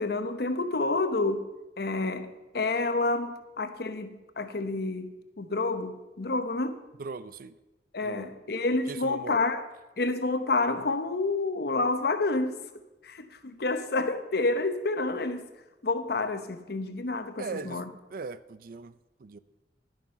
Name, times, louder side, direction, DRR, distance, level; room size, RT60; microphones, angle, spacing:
voice 1, 0.0-1.5 1.8-6.8 7.9-9.6 10.0-12.6 13.0-15.5 15.8-17.9, left 3 dB, 60° left, 0.9 m, -29 dB
voice 2, 7.0-7.6 8.0-8.3 8.9-9.4 17.4-17.8 18.1-19.4, right 4 dB, 55° right, 0.5 m, -39 dB
11.5 x 9.6 x 5.7 m
head